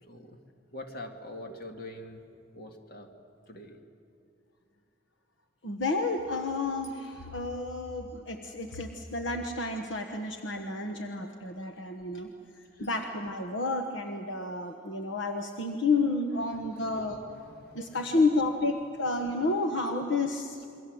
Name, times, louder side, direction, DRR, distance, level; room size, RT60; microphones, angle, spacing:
voice 1, 0.1-0.4 0.7-2.2 2.5-3.1 3.5-3.8 10.5-10.7 10.9-11.0 12.8-12.9 16.5-18.0, left 1 dB, 50° left, 4 dB, 2.2 m, -45 dB
voice 2, 5.6-12.3 12.8-17.2 17.7-20.6, left 3 dB, 70° left, 4 dB, 1.3 m, -30 dB
28.0 x 23.0 x 7.8 m, 2.5 s
head